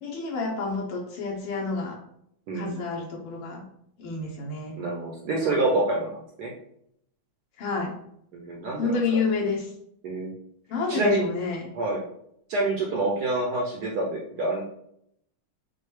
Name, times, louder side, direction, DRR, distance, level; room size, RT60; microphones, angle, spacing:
voice 1, 0.0-2.0 2.5-3.6 4.0-4.8 7.6-7.9 8.8-9.7 10.7-11.7, left 4 dB, 90° left, -1 dB, 1.8 m, -29 dB
voice 2, 2.5-2.8 4.8-6.5 8.3-8.9 10.0-10.3 10.9-11.3 11.7-12.0 12.5-14.6, right 2 dB, 65° right, -1 dB, 1.1 m, -27 dB
6.6 x 2.3 x 3.1 m, 0.72 s
omnidirectional pair, 2.3 m